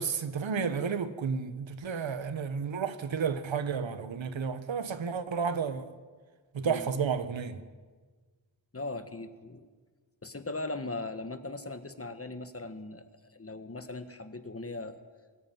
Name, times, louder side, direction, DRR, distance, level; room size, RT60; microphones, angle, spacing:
voice 1, 0.0-5.9 6.5-7.6, right 6 dB, 80° right, 1.3 m, -32 dB
voice 2, 8.7-9.7 10.2-15.0, left 2 dB, 30° left, 1.6 m, -39 dB
23.0 x 13.5 x 9.4 m
wide cardioid pair, 85°, 45 cm